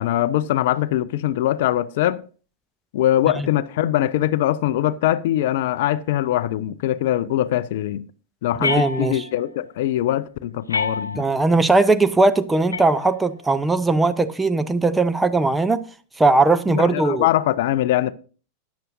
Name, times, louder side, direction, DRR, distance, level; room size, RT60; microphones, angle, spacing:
voice 1, 0.0-2.2 2.9-8.0 8.4-11.3 16.7-18.1, left 13 dB, 55° left, 0.4 m, -22 dB
sound 1, 8.6-9.5 10.7-11.5 12.7-13.5, left 4 dB, 75° left, 0.8 m, -28 dB
voice 2, 8.6-9.2 11.2-15.8 16.2-17.3, right 3 dB, 10° right, 0.6 m, -19 dB
13.0 x 9.4 x 2.6 m
figure-of-eight pair, 90°, 0 cm